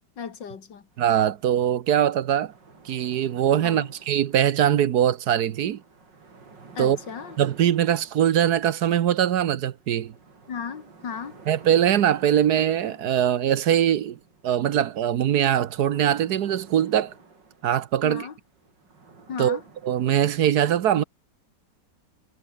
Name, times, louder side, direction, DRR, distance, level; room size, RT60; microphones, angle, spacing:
voice 1, 0.2-0.8 3.6-3.9 6.8-7.4 10.5-11.4 18.0-18.3 19.3-19.6, left 6 dB, 85° left, 2.7 m, -35 dB
sound 1, 0.9-20.2, right 4 dB, 85° right, 4.3 m, -51 dB
voice 2, 1.0-2.5 2.8-5.8 6.8-7.0 7.4-10.1 11.5-14.2 14.4-17.1 17.6-18.3 19.4-21.0, right 10 dB, 65° right, 1.4 m, -22 dB
omnidirectional pair, 1.9 m